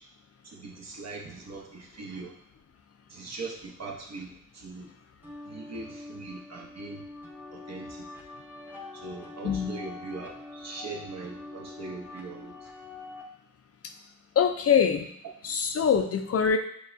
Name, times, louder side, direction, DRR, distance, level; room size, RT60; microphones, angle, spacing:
voice 1, 0.4-2.4 3.1-4.9 5.5-7.0 7.5-8.1 8.9-12.7, right 3 dB, 55° right, -1 dB, 0.9 m, -41 dB
sound 1, 5.2-13.2, left 2 dB, 5° right, 0.8 m, -44 dB
voice 2, 9.4-9.7 13.8-13.9 14.4-15.1 15.4-16.6, left 7 dB, 45° left, 7 dB, 0.4 m, -24 dB
6.6 x 2.3 x 2.5 m, 0.71 s
cardioid pair, 80°, 33 cm